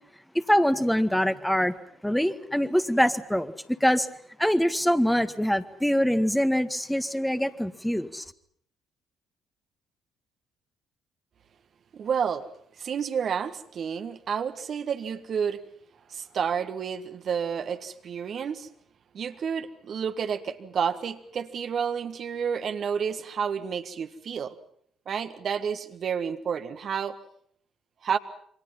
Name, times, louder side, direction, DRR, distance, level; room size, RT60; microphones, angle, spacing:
voice 1, 0.3-1.8 2.0-4.1 4.4-8.3, equal, 5° left, 9 dB, 1.9 m, -24 dB
voice 2, 11.9-12.4 12.8-15.6 16.1-18.7 19.1-24.5 25.0-27.2 28.0-28.2, right 7 dB, 50° right, 8 dB, 1.7 m, -30 dB
28.5 x 25.0 x 5.7 m, 0.64 s
figure-of-eight pair, 45°, 0 cm